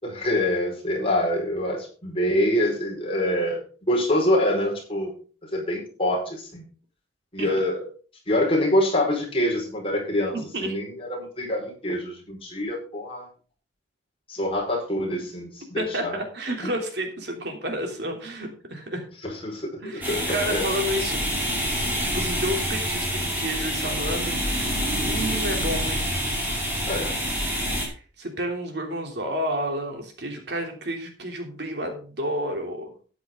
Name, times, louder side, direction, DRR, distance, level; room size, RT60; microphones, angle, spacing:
voice 1, 0.0-3.6 3.9-5.1 5.5-6.6 7.3-7.8 8.3-13.3 14.3-16.2 19.2-20.7 26.9-27.2, left 1 dB, 30° left, -1 dB, 5.0 m, -25 dB
voice 2, 10.3-10.8 15.7-19.1 19.8-21.2 22.0-24.7 25.0-26.2 27.7-32.9, right 1 dB, 60° right, 2 dB, 3.2 m, -30 dB
sound 1, 20.0-27.9, equal, 10° right, 5.2 m, -27 dB
13.0 x 9.9 x 3.8 m, 0.39 s
head